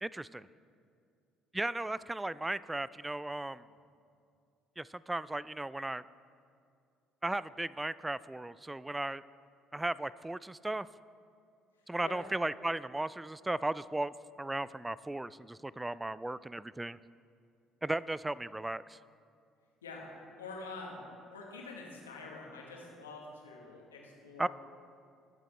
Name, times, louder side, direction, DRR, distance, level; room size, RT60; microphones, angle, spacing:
voice 1, 0.0-0.5 1.5-3.6 4.8-6.0 7.2-9.2 9.7-10.9 11.9-17.0 17.8-19.0 24.4-24.5, right 2 dB, 10° right, 18 dB, 0.3 m, -36 dB
voice 2, 12.0-12.3 19.8-20.1 20.4-21.0 21.3-24.5, left 3 dB, 80° left, -1 dB, 1.7 m, -46 dB
21.0 x 7.5 x 3.3 m, 2.4 s
figure-of-eight pair, 50°, 0 cm